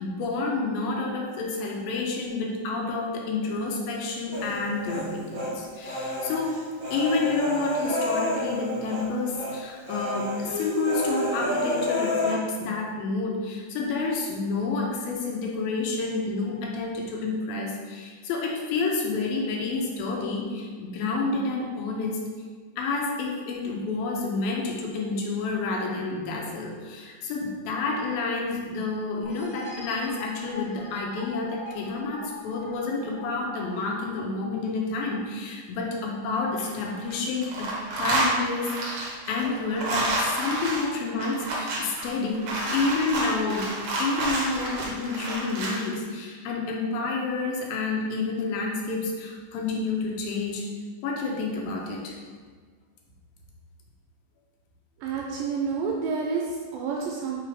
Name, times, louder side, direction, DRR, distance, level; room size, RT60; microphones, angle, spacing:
voice 1, 0.0-6.6 6.9-22.2 22.8-43.7 44.0-50.7 51.0-52.2 55.3-55.4, left 3 dB, 90° left, 0 dB, 2.7 m, -29 dB
Human voice, 4.3-5.5 5.8-9.1 9.3-9.6 9.9-12.3, left 1 dB, 40° right, 2.0 m, -29 dB
sound 1, 29.2-34.7, left 2 dB, 60° left, 1.0 m, -43 dB
sound 2, 36.4-37.1 37.4-45.9, right 2 dB, 65° right, 2.0 m, -29 dB
voice 2, 55.0-57.4, right 5 dB, 85° right, 0 dB, 2.2 m, -29 dB
5.8 x 3.3 x 4.9 m, 1.5 s
omnidirectional pair, 4.1 m